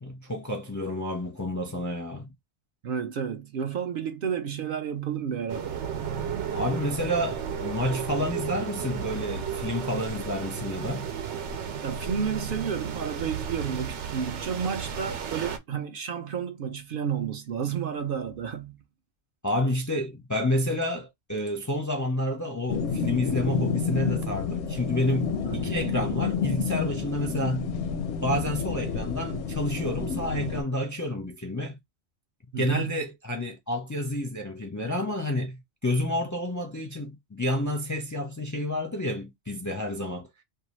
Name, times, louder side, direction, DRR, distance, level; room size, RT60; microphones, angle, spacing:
voice 1, 0.0-2.3 6.5-11.1 19.4-27.7 28.2-31.8 32.6-40.3, left 1 dB, 25° left, 0.4 m, -29 dB
voice 2, 2.8-5.8 11.8-18.8 25.4-25.9 32.5-33.1, right 7 dB, 60° right, 0.7 m, -31 dB
sound 1, 5.5-15.6, right 7 dB, 85° right, 1.0 m, -33 dB
sound 2, 22.7-30.6, left 5 dB, 80° left, 0.9 m, -29 dB
2.6 x 2.3 x 3.0 m
omnidirectional pair, 1.2 m